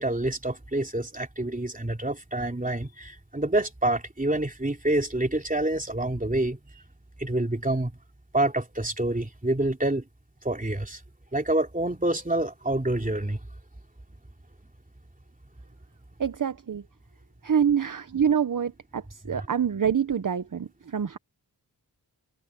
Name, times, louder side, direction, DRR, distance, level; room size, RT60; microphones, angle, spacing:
voice 1, 0.0-6.6 7.2-7.9 8.3-10.0 10.4-11.0 11.3-13.4 19.3-19.5, right 1 dB, 20° right, 3.0 m, -27 dB
voice 2, 16.2-16.8 17.4-21.2, right 7 dB, 50° right, 0.8 m, -26 dB
wide cardioid pair, 75°, 42 cm